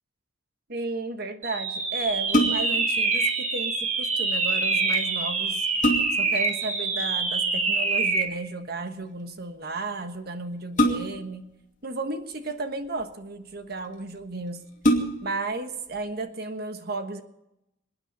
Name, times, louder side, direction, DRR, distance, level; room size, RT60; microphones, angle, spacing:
voice 1, 0.7-5.7 6.2-11.4 11.8-14.6 15.2-17.2, right 3 dB, 55° right, 8 dB, 1.4 m, -33 dB
sound 1, 1.4-8.4, right 3 dB, 35° right, 1.9 m, -26 dB
sound 2, 2.1-2.9 4.9-5.0 5.5-6.4 7.9-8.3 10.8-11.4 12.3-13.0 13.8-13.9 14.2-14.3 14.8-15.4 15.9-16.0, equal, 40° left, 2.6 m, -25 dB
27.0 x 9.5 x 5.6 m, 0.86 s
head